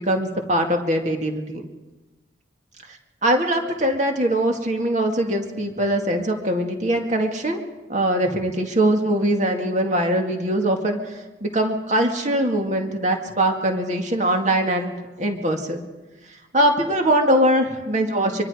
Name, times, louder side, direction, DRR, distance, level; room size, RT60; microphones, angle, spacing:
voice 1, 0.0-1.7 3.2-7.6 7.9-15.8 16.5-18.4, right 1 dB, 40° right, 3 dB, 2.1 m, -22 dB
24.5 x 23.5 x 5.0 m, 1.2 s
head